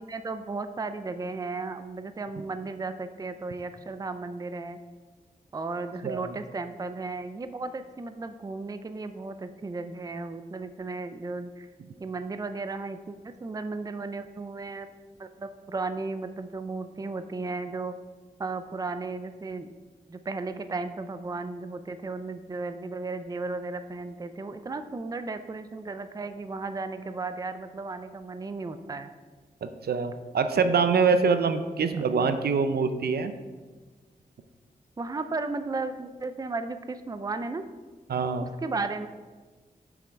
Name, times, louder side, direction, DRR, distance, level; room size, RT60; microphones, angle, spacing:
voice 1, 0.0-4.8 5.5-11.7 12.0-14.9 15.2-17.9 18.4-19.7 20.1-29.1 31.9-32.0 35.0-37.6 38.4-39.1, right 3 dB, 25° right, 10 dB, 0.4 m, -35 dB
voice 2, 29.6-33.3 38.1-38.5, right 5 dB, 80° right, 9 dB, 0.5 m, -24 dB
7.1 x 6.0 x 4.6 m, 1.4 s
wide cardioid pair, 95°, 16 cm